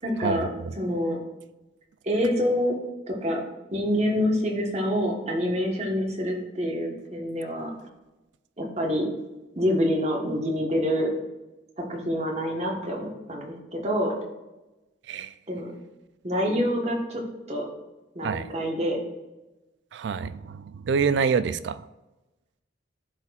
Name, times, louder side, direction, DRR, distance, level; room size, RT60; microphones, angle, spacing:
voice 1, 0.0-1.2 2.0-2.8 3.1-3.4 3.7-7.7 8.6-9.1 9.6-11.1 11.9-14.1 15.5-15.7 16.2-17.2 17.5-17.7 18.1-19.0, equal, 35° right, 0 dB, 1.2 m, -26 dB
voice 2, 19.9-21.8, right 6 dB, 65° right, 14 dB, 0.3 m, -26 dB
12.0 x 4.3 x 2.4 m, 1.0 s
head